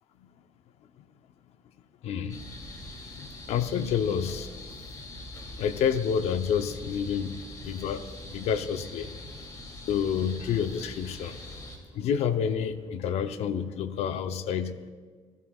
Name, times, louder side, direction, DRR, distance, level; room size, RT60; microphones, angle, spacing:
voice 1, 2.0-2.5 3.2-4.5 5.6-9.1 9.9-11.4 11.9-14.8, left 7 dB, 75° left, 9 dB, 0.8 m, -29 dB
Dusk with crickets, 2.3-11.8, left 1 dB, 35° left, 2.9 m, -43 dB
27.5 x 13.0 x 2.4 m, 1.5 s
cardioid pair, 90°, 11 cm